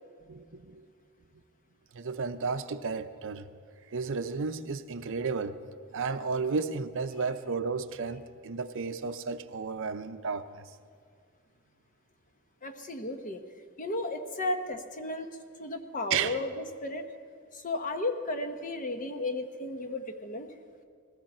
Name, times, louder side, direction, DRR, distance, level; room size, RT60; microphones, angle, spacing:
voice 1, 0.3-0.9 1.9-3.5 3.9-5.6 5.9-10.6 16.1-16.4, right 5 dB, 65° right, 0.6 m, -33 dB
voice 2, 12.6-13.4 13.8-15.3 15.6-17.0 17.5-20.5, left 2 dB, 40° left, 1.0 m, -34 dB
19.5 x 15.5 x 4.3 m
head